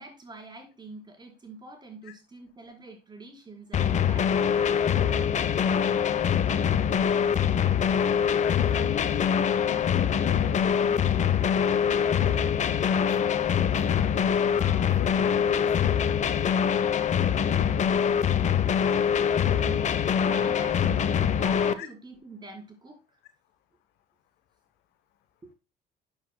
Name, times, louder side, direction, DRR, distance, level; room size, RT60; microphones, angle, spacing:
voice 1, 0.0-5.3 19.6-23.0 25.4-25.5, right 3 dB, 25° right, 2 dB, 4.4 m, -45 dB
sound 1, 3.7-21.7, left 8 dB, 45° left, 0.9 m, -24 dB
voice 2, 8.4-14.1 14.5-16.4 21.8-21.9, left 11 dB, 85° left, 7 dB, 1.1 m, -41 dB
13.0 x 7.2 x 2.2 m, 0.29 s
cardioid pair, 110°, 17 cm